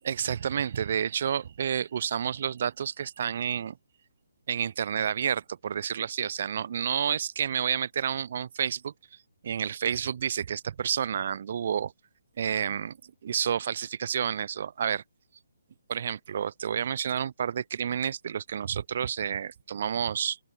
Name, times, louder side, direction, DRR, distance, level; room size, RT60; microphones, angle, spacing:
voice 1, 0.0-3.8 4.5-8.9 9.4-11.9 12.4-15.0 15.9-20.4, right 8 dB, 50° right, 0.5 m, -30 dB
open air
figure-of-eight pair, 140°, 0 cm